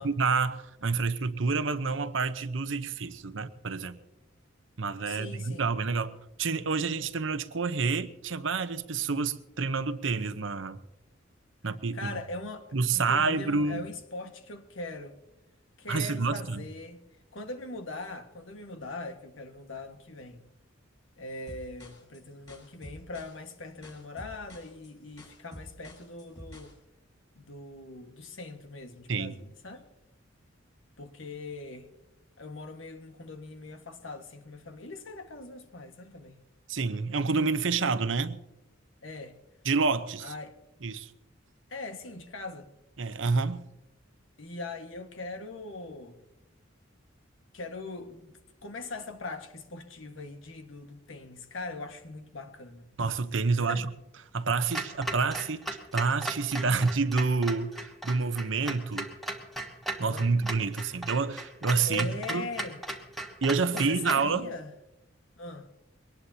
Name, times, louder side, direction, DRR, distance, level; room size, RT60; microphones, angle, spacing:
voice 1, 0.0-4.0 4.8-10.8 11.6-12.1 12.7-13.8 15.9-16.6 29.1-29.4 36.7-38.4 39.6-40.3 40.8-41.1 43.0-43.7 53.0-53.9 54.3-55.6 55.9-59.1 60.0-62.5 63.4-64.5, right 4 dB, 75° right, 0.9 m, -28 dB
voice 2, 5.0-5.7 11.9-15.2 15.8-17.0 17.3-20.4 21.2-26.7 27.3-29.9 31.0-31.9 32.4-36.4 39.0-39.4 40.2-40.6 41.7-42.7 44.4-46.2 47.5-52.9 53.5-53.9 60.1-60.3 61.8-62.8 63.7-64.7 65.4-65.7, left 2 dB, 85° left, 1.6 m, -41 dB
sound 1, 21.5-26.8, left 1 dB, 20° left, 5.8 m, -49 dB
Clock, 54.7-64.3, right 1 dB, ahead, 1.4 m, -37 dB
23.0 x 19.0 x 2.8 m
head